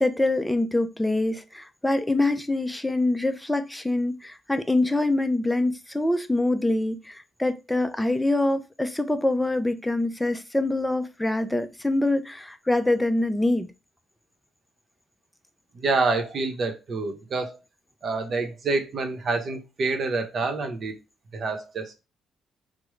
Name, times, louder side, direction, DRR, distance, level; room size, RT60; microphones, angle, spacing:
voice 1, 0.0-13.7, left 2 dB, 10° left, 0.4 m, -25 dB
voice 2, 15.7-17.6 18.0-20.9 21.3-22.0, right 3 dB, 50° right, 0.8 m, -27 dB
3.5 x 2.0 x 3.1 m
cardioid pair, 90°, 0 cm